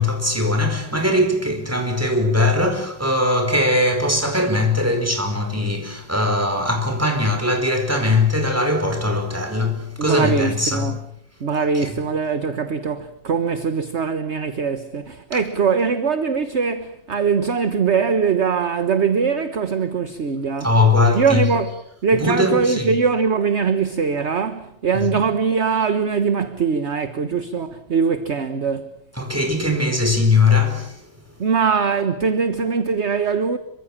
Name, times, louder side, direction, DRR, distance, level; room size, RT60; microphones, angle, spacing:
voice 1, 0.0-10.9 11.8-11.9 20.6-21.4 22.2-22.9 24.9-25.1 29.2-30.9, left 2 dB, 5° right, 4.8 m, -20 dB
voice 2, 10.0-11.1 11.4-20.7 21.1-21.7 22.0-28.9 31.4-33.6, right 5 dB, 40° right, 1.4 m, -21 dB
27.0 x 25.0 x 7.4 m
omnidirectional pair, 2.0 m